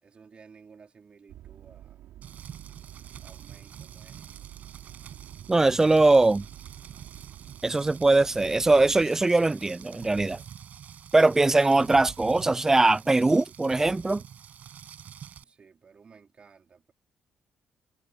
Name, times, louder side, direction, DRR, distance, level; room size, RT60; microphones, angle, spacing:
voice 1, 0.0-2.0 3.2-4.5 15.4-16.9, right 5 dB, 35° right, 4.1 m, -55 dB
sound 1, 1.3-9.0, right 13 dB, 85° right, 6.2 m, -48 dB
Rain, 2.2-15.4, right 8 dB, 55° right, 7.0 m, -46 dB
voice 2, 5.5-6.4 7.6-10.4 11.1-14.2, right 2 dB, 15° right, 0.4 m, -21 dB
cardioid pair, 120°, 3 cm